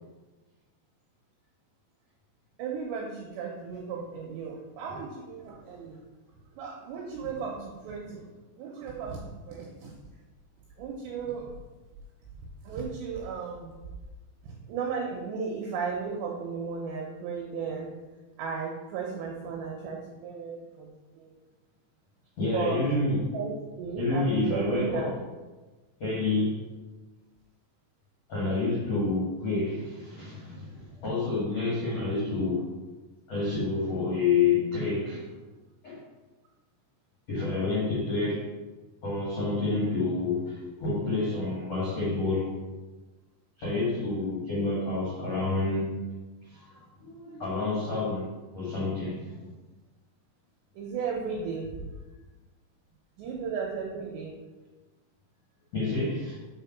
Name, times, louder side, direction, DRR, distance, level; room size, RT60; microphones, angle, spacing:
voice 1, 2.6-6.0 6.5-8.2 8.6-9.9 10.8-11.5 12.6-13.7 14.4-17.9 18.4-21.3 22.5-22.8 23.3-25.2 50.7-51.8 53.2-54.3, right 5 dB, 80° right, -1 dB, 2.6 m, -35 dB
voice 2, 22.4-23.3 23.9-25.2 26.0-26.7 28.3-32.7 33.3-35.3 35.8-36.0 37.3-38.4 39.0-42.5 43.6-45.9 46.5-49.4 55.7-56.4, left 3 dB, 60° left, -6 dB, 1.7 m, -28 dB
7.5 x 4.6 x 5.8 m, 1.2 s
omnidirectional pair, 6.0 m